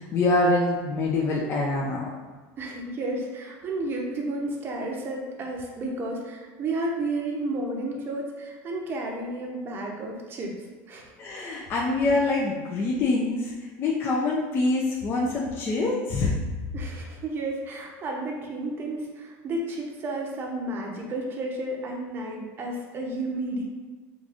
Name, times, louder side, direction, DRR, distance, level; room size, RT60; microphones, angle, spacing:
voice 1, 0.0-2.1 11.2-16.4, left 2 dB, 30° left, -3 dB, 0.4 m, -25 dB
voice 2, 2.6-10.5 10.9-11.1 16.7-23.6, right 2 dB, 30° right, 0 dB, 0.6 m, -32 dB
4.7 x 2.6 x 2.4 m, 1.4 s
cardioid pair, 145°, 7 cm